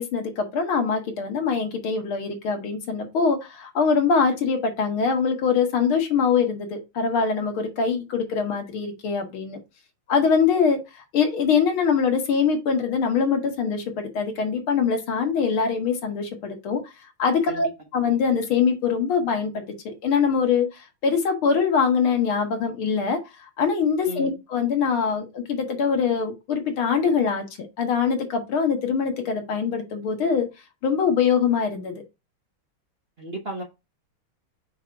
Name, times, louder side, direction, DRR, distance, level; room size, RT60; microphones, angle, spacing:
voice 1, 0.0-9.6 10.1-16.8 17.2-23.2 23.6-27.5 27.8-30.5 30.8-32.0, left 6 dB, 75° left, 2.2 m, -23 dB
voice 2, 33.2-33.6, equal, 40° right, 1.0 m, -33 dB
5.8 x 5.1 x 3.3 m
omnidirectional pair, 2.3 m